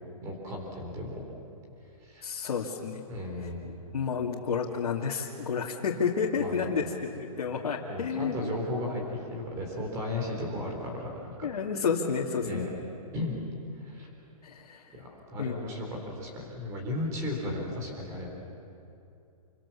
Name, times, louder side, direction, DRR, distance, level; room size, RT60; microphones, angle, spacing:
voice 1, 0.2-1.2 2.0-2.3 3.1-3.6 6.4-6.7 7.9-11.3 12.4-12.7 13.1-13.4 13.8-14.1 14.9-18.3, left 1 dB, 15° right, 0 dB, 3.9 m, -35 dB
voice 2, 2.2-3.0 3.9-8.4 11.4-12.7 14.4-14.9 15.4-15.7, left 6 dB, 75° left, -3 dB, 2.5 m, -30 dB
28.0 x 24.5 x 7.3 m, 2.6 s
hypercardioid pair, 175°, 19 cm